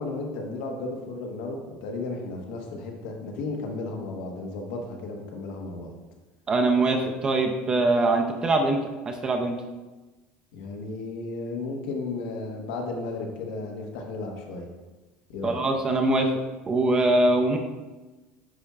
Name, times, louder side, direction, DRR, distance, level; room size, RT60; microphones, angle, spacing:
voice 1, 0.0-5.9 10.5-14.7 15.3-15.6, left 3 dB, 85° left, 1 dB, 1.2 m, -34 dB
voice 2, 6.5-9.6 15.4-16.3 16.7-17.6, right 2 dB, 20° right, 4 dB, 0.5 m, -23 dB
9.7 x 4.3 x 2.4 m, 1.2 s
cardioid pair, 165°, 4 cm